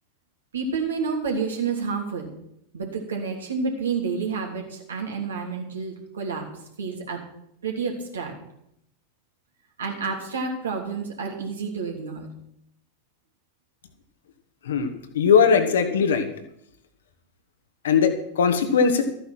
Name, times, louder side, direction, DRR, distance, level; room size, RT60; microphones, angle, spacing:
voice 1, 0.5-2.3 2.7-6.4 6.8-7.2 7.6-8.3 9.8-12.3, right 5 dB, 70° right, 2 dB, 3.0 m, -29 dB
voice 2, 15.1-16.2 17.8-19.0, left 6 dB, 60° left, 7 dB, 1.6 m, -19 dB
13.5 x 9.2 x 6.1 m, 0.76 s
figure-of-eight pair, 90°, 0 cm